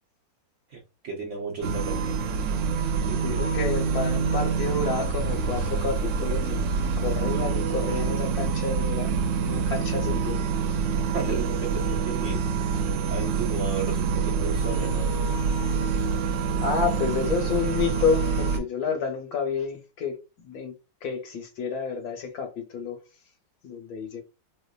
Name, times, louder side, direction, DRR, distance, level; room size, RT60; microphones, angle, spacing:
voice 1, 0.7-2.2 3.1-3.4 7.3-7.5 11.1-12.4 13.1-15.1, right 4 dB, 55° right, 0.9 m, -34 dB
sound 1, 1.6-18.6, right 5 dB, 80° right, 1.3 m, -26 dB
voice 2, 3.2-6.6 7.0-9.1 9.4-10.4 10.7-10.8 16.6-20.2 20.4-20.7 21.0-23.0 23.6-24.2, left 5 dB, 65° left, 1.2 m, -29 dB
4.5 x 2.5 x 2.3 m
omnidirectional pair, 2.0 m